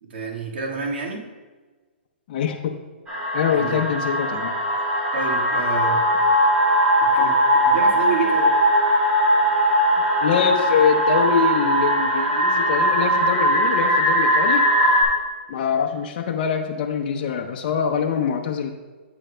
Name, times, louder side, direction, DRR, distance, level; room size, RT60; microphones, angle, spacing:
voice 1, 0.0-1.3 3.5-3.8 5.1-6.0 7.0-7.3 7.6-8.6, right 5 dB, 70° right, -1 dB, 1.8 m, -29 dB
voice 2, 2.3-2.7 3.3-4.5 10.2-14.6 15.5-18.7, left 7 dB, 50° left, 2 dB, 0.7 m, -24 dB
sound 1, 3.1-15.0, equal, 15° right, 2.2 m, -19 dB
9.6 x 7.8 x 2.2 m, 1.3 s
hypercardioid pair, 145°, 6 cm